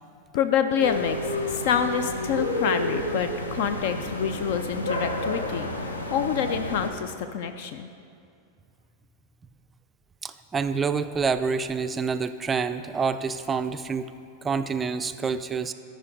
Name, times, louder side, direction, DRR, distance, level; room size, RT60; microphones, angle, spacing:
voice 1, 0.3-5.7 6.1-7.9, left 8 dB, 50° left, 9 dB, 0.4 m, -27 dB
sound 1, 0.8-6.9, left 1 dB, 75° left, 0.8 m, -30 dB
voice 2, 10.2-14.1 14.4-15.7, right 5 dB, 20° right, 10 dB, 0.3 m, -27 dB
13.5 x 5.0 x 3.9 m, 2.4 s
figure-of-eight pair, 90°, 0 cm